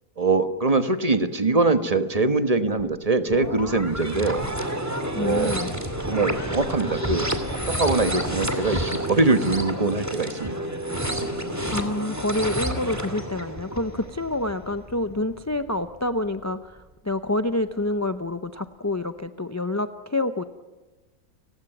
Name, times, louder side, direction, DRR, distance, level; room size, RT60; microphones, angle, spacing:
voice 1, 0.2-4.4 5.1-5.5 6.0-7.3 7.7-10.5, right 3 dB, 25° right, 9 dB, 1.3 m, -23 dB
sound 1, 2.8-2.9 3.3-15.7 16.2-16.3, right 1 dB, 10° right, 2.3 m, -30 dB
voice 2, 5.1-5.7 11.7-20.4, left 2 dB, 25° left, 10 dB, 0.3 m, -27 dB
30.0 x 16.5 x 9.0 m, 1.2 s
omnidirectional pair, 1.6 m